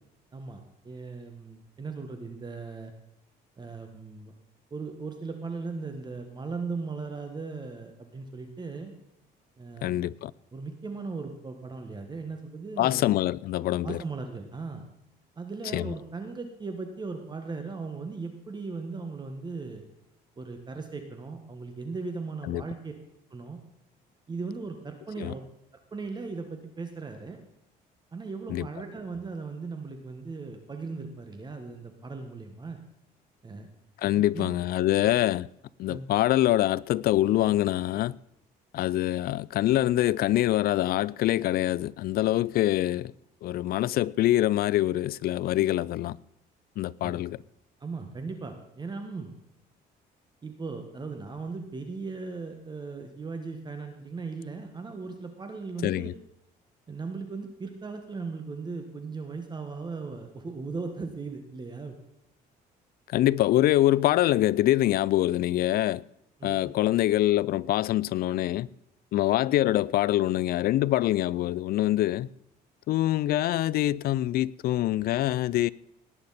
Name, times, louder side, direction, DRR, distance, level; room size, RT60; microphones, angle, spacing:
voice 1, 0.3-2.9 3.6-4.3 4.7-8.9 9.6-10.1 10.5-13.1 13.8-14.8 15.4-19.8 20.4-22.9 23.3-23.6 24.3-25.4 25.9-27.4 28.1-32.8 33.4-33.7 34.2-34.5 34.9-35.0 35.8-36.1 47.0-47.2 47.8-49.3 50.4-56.1 56.9-62.0 66.4-66.7, right 4 dB, 25° right, 1.6 m, -38 dB
voice 2, 9.8-10.3 12.8-14.0 15.7-15.9 22.5-22.6 25.2-25.3 28.5-28.7 34.0-35.5 35.8-38.1 38.7-43.1 43.4-46.2 46.8-47.4 55.8-56.1 63.1-66.0 66.4-68.7 69.1-72.3 72.9-75.7, left 14 dB, 65° left, 0.4 m, -25 dB
18.5 x 9.8 x 4.2 m
cardioid pair, 110°, 17 cm